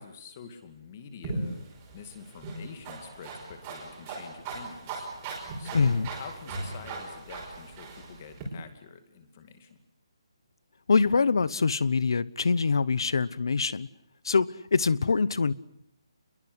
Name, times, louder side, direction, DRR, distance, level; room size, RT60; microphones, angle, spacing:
voice 1, 0.0-5.1 5.6-9.8, left 6 dB, 20° left, 9 dB, 2.3 m, -47 dB
sound 1, 1.2-8.4, right 2 dB, 15° right, 5.5 m, -38 dB
voice 2, 5.7-6.1 10.9-13.9 14.2-15.5, left 4 dB, 55° left, 20 dB, 1.0 m, -24 dB
28.5 x 22.0 x 8.1 m, 0.76 s
hypercardioid pair, 180°, 3 cm